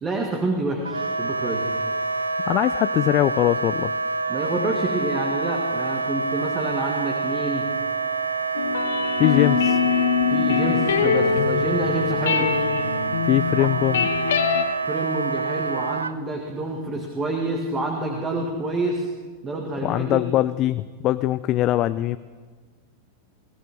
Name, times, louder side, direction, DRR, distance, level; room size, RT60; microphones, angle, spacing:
voice 1, 0.0-1.6 4.3-7.7 10.3-12.5 13.6-13.7 14.8-19.1 19.4-20.2, right 2 dB, 25° right, 1 dB, 2.0 m, -28 dB
Wind instrument woodwind instrument, 0.8-16.1, right 4 dB, 75° right, 0.4 m, -27 dB
voice 2, 2.5-3.9 9.2-9.8 13.2-14.1 19.8-22.2, left 14 dB, 35° left, 14 dB, 0.4 m, -22 dB
sound 1, 8.6-14.7, left 8 dB, 60° left, 1.3 m, -23 dB
23.0 x 16.5 x 3.7 m, 1.5 s
figure-of-eight pair, 90°, 0 cm